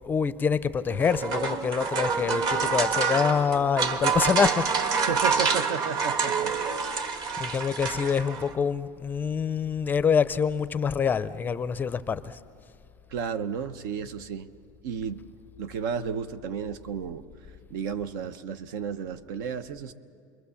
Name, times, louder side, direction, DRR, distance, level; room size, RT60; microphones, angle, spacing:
voice 1, 0.0-4.7 5.3-5.6 7.0-12.4, left 6 dB, 20° left, 0.5 m, -26 dB
sound 1, 0.9-8.5, right 5 dB, 40° right, 1.4 m, -27 dB
voice 2, 5.1-6.5 13.1-14.5 14.8-15.2 15.6-17.2 17.7-19.9, right 7 dB, 80° right, 1.0 m, -32 dB
27.5 x 22.0 x 7.1 m
supercardioid pair, 145°, 10 cm